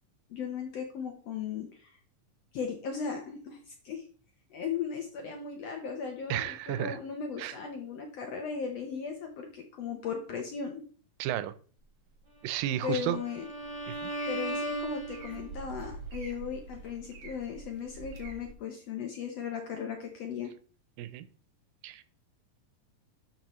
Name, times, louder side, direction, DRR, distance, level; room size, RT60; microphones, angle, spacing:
voice 1, 0.3-2.0 2.5-4.0 4.5-10.8 12.8-13.5 14.3-20.5, left 6 dB, 70° left, 1.6 m, -37 dB
voice 2, 6.3-7.0 7.4-7.6 11.2-11.5 12.4-13.2 13.9-14.1 21.0-21.3 21.8-22.0, right 12 dB, 90° right, 2.4 m, -32 dB
Bowed string instrument, 12.6-15.7, right 2 dB, 30° right, 4.7 m, -37 dB
sound 1, 13.6-18.5, right 4 dB, 55° right, 2.0 m, -46 dB
12.0 x 5.3 x 3.1 m
omnidirectional pair, 3.9 m